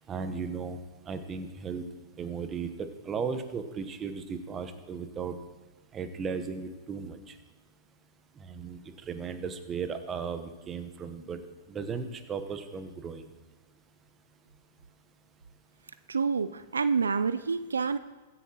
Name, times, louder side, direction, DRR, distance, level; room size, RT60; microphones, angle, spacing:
voice 1, 0.1-0.8 1.1-1.8 2.2-5.3 5.9-7.3 8.4-8.8 9.1-11.4 11.7-13.3, right 5 dB, 25° right, 9 dB, 1.0 m, -36 dB
voice 2, 16.1-18.0, right 5 dB, 85° right, 13 dB, 0.3 m, -28 dB
15.5 x 10.0 x 3.0 m, 1.3 s
hypercardioid pair, 110°, 0 cm